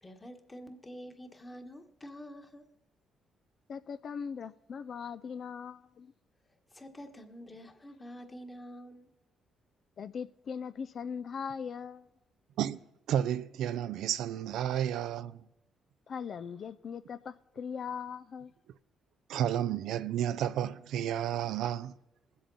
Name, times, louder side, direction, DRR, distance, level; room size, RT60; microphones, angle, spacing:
voice 1, 0.0-2.7 6.7-9.1, equal, 20° left, 1.5 m, -47 dB
voice 2, 3.7-6.1 10.0-12.1 16.1-18.5, left 6 dB, 55° left, 0.4 m, -40 dB
voice 3, 13.1-15.4 19.3-21.9, right 10 dB, 80° right, 0.4 m, -31 dB
21.0 x 7.7 x 4.1 m
cardioid pair, 90°, 0 cm